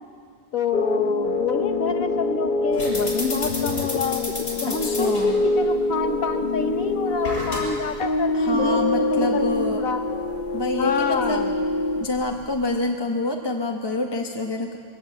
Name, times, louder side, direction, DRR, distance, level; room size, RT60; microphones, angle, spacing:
voice 1, 0.5-4.3 4.6-10.0 10.8-11.5, left 5 dB, 90° left, 7 dB, 1.6 m, -28 dB
sound 1, 0.7-12.0, left 2 dB, 45° left, 1.0 m, -25 dB
sound 2, 2.7-12.8, left 1 dB, 60° left, 5.5 m, -35 dB
voice 2, 4.7-5.4 8.3-9.8 10.5-11.5 12.0-14.8, left 2 dB, 20° left, 2 dB, 1.0 m, -27 dB
21.5 x 16.5 x 7.7 m, 2.1 s
omnidirectional pair, 1.4 m